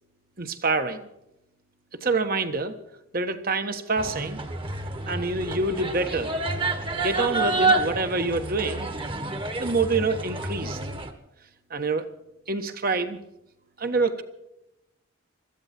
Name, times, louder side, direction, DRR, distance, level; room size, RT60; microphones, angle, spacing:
voice 1, 0.4-1.1 1.9-2.7 3.1-4.4 5.1-6.4 7.0-8.9 9.6-10.8 11.7-12.1 12.5-13.2 13.8-14.2, right 3 dB, 45° right, 8 dB, 1.4 m, -26 dB
sound 1, 4.0-11.1, right 2 dB, 25° right, 1.4 m, -29 dB
22.0 x 14.5 x 4.4 m, 0.86 s
head